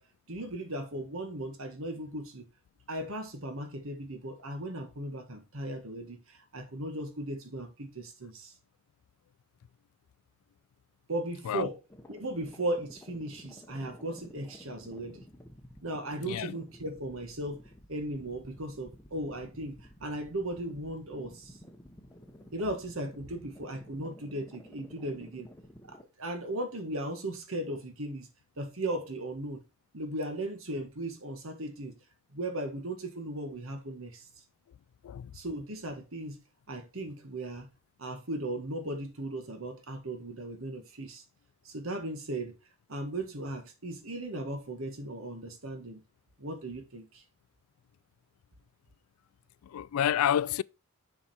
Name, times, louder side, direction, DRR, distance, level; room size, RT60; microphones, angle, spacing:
voice 1, 0.3-2.5 2.9-8.5 11.1-11.8 12.1-15.2 15.8-17.6 17.9-21.6 22.5-25.5 25.9-28.3 28.6-29.6 29.9-32.0 32.3-34.3 35.3-36.4 36.7-37.7 38.0-41.2 41.6-42.5 42.9-46.0 46.4-47.2, right 1 dB, 65° right, 1.6 m, -37 dB
sound 1, 11.9-26.0, equal, 10° left, 0.9 m, -53 dB
voice 2, 16.2-16.6 35.0-35.3 49.6-50.6, left 10 dB, 80° left, 0.3 m, -29 dB
7.1 x 4.9 x 4.3 m
head